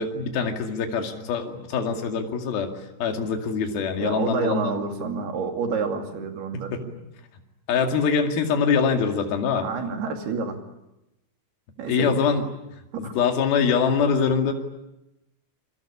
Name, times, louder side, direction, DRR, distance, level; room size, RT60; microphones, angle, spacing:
voice 1, 0.0-2.7 3.0-4.7 6.7-6.8 7.7-9.7 11.9-12.5 13.0-14.5, left 6 dB, 60° left, 4 dB, 4.0 m, -23 dB
voice 2, 4.0-6.9 9.5-10.6 11.8-12.1 12.9-13.1, right 5 dB, 65° right, 4 dB, 4.4 m, -29 dB
28.0 x 23.0 x 8.6 m, 0.92 s
omnidirectional pair, 5.0 m